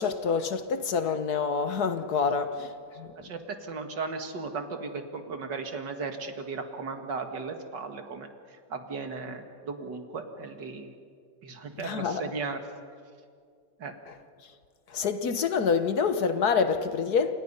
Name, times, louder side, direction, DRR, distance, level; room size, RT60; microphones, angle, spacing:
voice 1, 0.0-2.7 3.0-3.1 11.8-12.2 14.9-17.4, left 5 dB, 60° left, 1.6 m, -27 dB
voice 2, 3.2-8.3 8.7-10.9 11.4-12.6 13.8-13.9, right 4 dB, 75° right, 2.5 m, -36 dB
29.0 x 27.0 x 5.6 m
omnidirectional pair, 1.9 m